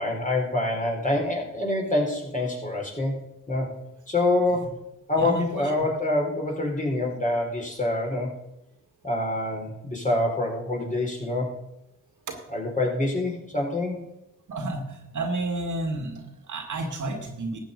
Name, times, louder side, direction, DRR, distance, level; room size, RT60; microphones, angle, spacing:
voice 1, 0.0-3.2 3.5-3.7 4.1-4.7 5.1-8.3 9.0-11.6 12.5-14.0, left 2 dB, 25° left, -1 dB, 4.3 m, -26 dB
voice 2, 5.2-5.7 12.3-12.4 14.5-17.6, right 2 dB, 65° right, 5 dB, 2.0 m, -31 dB
13.0 x 8.1 x 5.3 m, 0.85 s
supercardioid pair, 55°, 32 cm